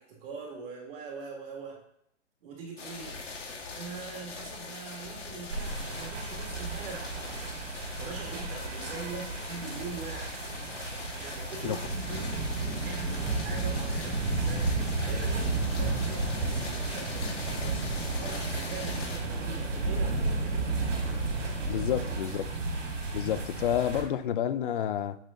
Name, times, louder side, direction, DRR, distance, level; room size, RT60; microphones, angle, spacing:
voice 1, 0.0-1.8 2.4-10.3 11.2-20.7 22.1-22.2, right 4 dB, 50° right, 2.1 m, -43 dB
sound 1, 2.8-19.2, left 4 dB, 70° left, 2.3 m, -42 dB
sound 2, 5.5-24.0, right 3 dB, 90° right, 2.7 m, -32 dB
sound 3, 15.4-22.3, right 5 dB, 65° right, 2.0 m, -43 dB
voice 2, 21.7-22.5 23.1-25.2, left 10 dB, 45° left, 0.5 m, -29 dB
8.5 x 4.2 x 3.7 m
hypercardioid pair, 150°, 37 cm